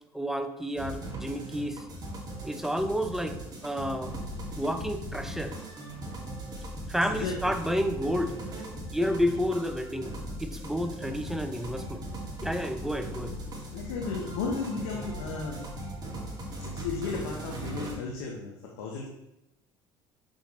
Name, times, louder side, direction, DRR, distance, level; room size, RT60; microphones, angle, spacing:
voice 1, 0.1-1.8 2.4-3.4 3.6-4.1 4.6-5.5 6.9-8.4 8.9-12.0 12.4-13.3, equal, 5° right, 8 dB, 0.6 m, -30 dB
sound 1, 0.8-17.9, right 1 dB, 30° right, 2.2 m, -39 dB
voice 2, 7.1-7.5 13.7-15.7 16.6-19.1, left 4 dB, 80° left, -1 dB, 0.9 m, -34 dB
6.2 x 5.7 x 3.2 m, 0.88 s
hypercardioid pair, 75°, 13 cm